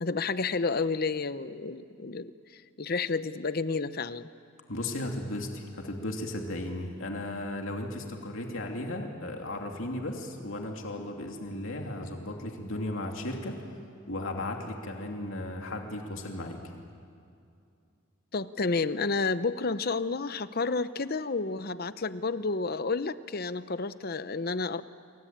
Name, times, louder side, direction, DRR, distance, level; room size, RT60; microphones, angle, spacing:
voice 1, 0.0-4.3 18.3-24.8, left 4 dB, 45° left, 13 dB, 0.8 m, -30 dB
voice 2, 4.7-13.7 14.1-16.6, left 1 dB, 70° left, 2 dB, 2.8 m, -35 dB
27.5 x 23.5 x 8.8 m, 2.5 s
head